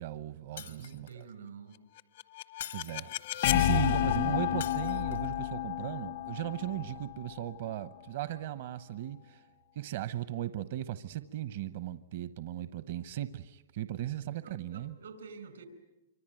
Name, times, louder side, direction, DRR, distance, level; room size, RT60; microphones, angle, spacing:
voice 1, 0.0-1.3 2.7-9.4 9.8-15.0, right 12 dB, 60° right, 0.9 m, -37 dB
voice 2, 0.5-1.8 3.0-3.1 14.0-15.7, right 6 dB, 90° right, 5.2 m, -49 dB
Shatter, 0.6-1.3 2.6-3.4 4.6-5.4, left 10 dB, 80° left, 1.3 m, -45 dB
sound 1, 2.0-7.9, left 13 dB, 60° left, 0.9 m, -31 dB
26.0 x 25.0 x 9.1 m
hypercardioid pair, 140°, 0 cm